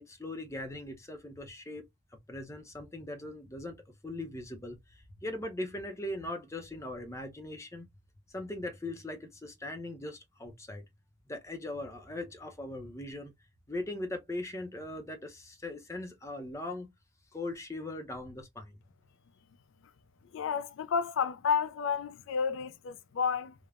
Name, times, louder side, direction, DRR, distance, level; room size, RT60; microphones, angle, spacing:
voice 1, 0.0-1.9 2.3-7.9 8.3-10.8 11.3-13.3 13.7-16.9 17.3-18.8, left 1 dB, 15° left, 0.6 m, -40 dB
voice 2, 20.3-23.5, left 6 dB, 80° left, 0.3 m, -31 dB
3.3 x 2.1 x 2.3 m
head